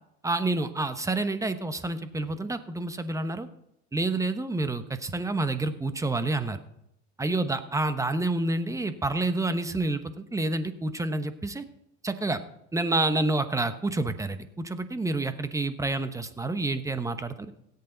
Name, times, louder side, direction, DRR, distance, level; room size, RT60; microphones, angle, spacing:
voice 1, 0.2-3.5 3.9-6.6 7.2-11.6 12.0-12.4 12.7-17.5, right 2 dB, 10° right, 10 dB, 0.9 m, -28 dB
18.0 x 8.4 x 3.9 m, 0.77 s
supercardioid pair, 110°, 31 cm